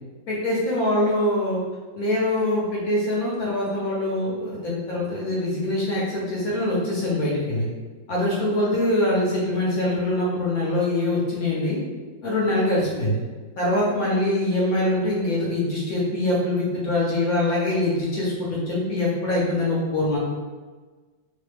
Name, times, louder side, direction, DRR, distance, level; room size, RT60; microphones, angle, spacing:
voice 1, 0.3-1.6 1.9-7.7 8.1-11.8 12.2-13.2 13.6-20.2, left 1 dB, 60° left, -5 dB, 1.0 m, -23 dB
3.1 x 2.1 x 3.3 m, 1.4 s
omnidirectional pair, 2.0 m